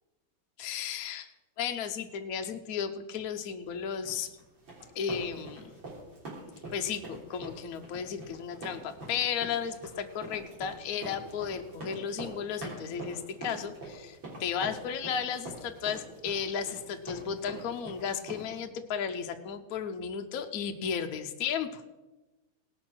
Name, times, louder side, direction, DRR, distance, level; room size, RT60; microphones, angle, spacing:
voice 1, 0.6-1.3 1.6-4.3 4.9-5.7 6.7-21.9, left 7 dB, 70° left, 6 dB, 0.8 m, -34 dB
sound 1, 4.0-18.6, right 2 dB, 60° right, 4.2 m, -44 dB
17.5 x 6.4 x 6.0 m, 1.1 s
omnidirectional pair, 2.3 m